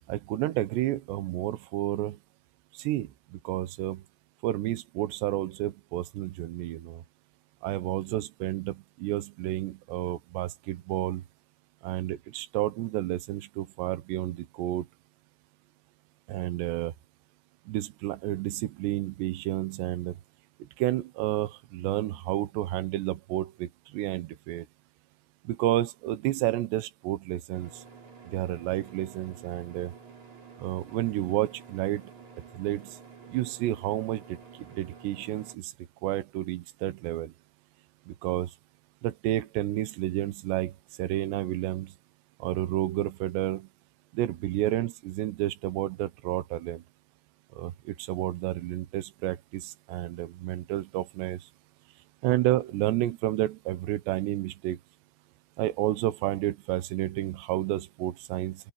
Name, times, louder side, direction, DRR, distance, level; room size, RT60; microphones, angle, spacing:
voice 1, 0.1-2.2 2.8-4.0 4.4-7.0 7.6-11.2 11.8-14.9 16.3-16.9 17.7-20.2 20.8-24.7 25.4-27.7 28.3-29.9 30.6-32.0 32.5-33.0 33.3-34.4 34.8-35.7 36.0-37.3 38.1-38.5 39.0-41.9 42.4-43.7 44.1-46.8 47.6-51.4 52.2-54.8 55.6-58.7, right 15 dB, 75° right, 3.2 m, -30 dB
sound 1, 27.5-35.6, right 5 dB, 40° right, 6.4 m, -50 dB
open air
omnidirectional pair, 5.1 m